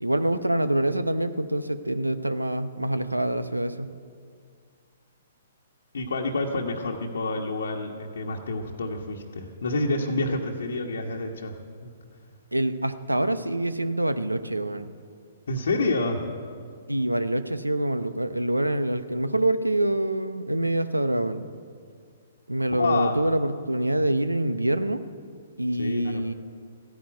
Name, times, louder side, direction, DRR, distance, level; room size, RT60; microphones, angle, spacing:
voice 1, 0.0-3.9 12.5-14.9 16.9-21.5 22.5-25.0 25.6-26.3, right 1 dB, 85° right, 12 dB, 0.8 m, -25 dB
voice 2, 5.9-11.5 11.8-11.9 15.5-16.3 22.7-23.2 25.8-26.2, left 2 dB, 60° left, -1 dB, 1.3 m, -28 dB
15.5 x 10.5 x 9.2 m, 2.1 s
figure-of-eight pair, 120°, 0 cm